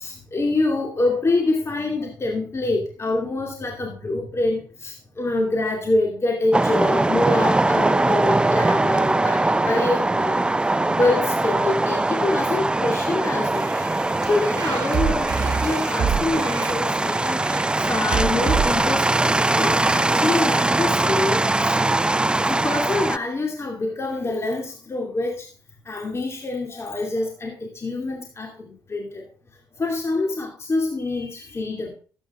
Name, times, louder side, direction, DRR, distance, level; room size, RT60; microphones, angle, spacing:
voice 1, 0.0-17.5 17.8-21.8 22.4-25.5 25.8-29.3 29.8-31.9, left 2 dB, 35° left, 2 dB, 2.6 m, -26 dB
sound 1, 6.5-23.2, right 2 dB, 10° right, 0.4 m, -21 dB
sound 2, 13.5-20.0, right 7 dB, 55° right, 1.7 m, -29 dB
12.5 x 8.9 x 3.6 m, 0.38 s
supercardioid pair, 55°, 8 cm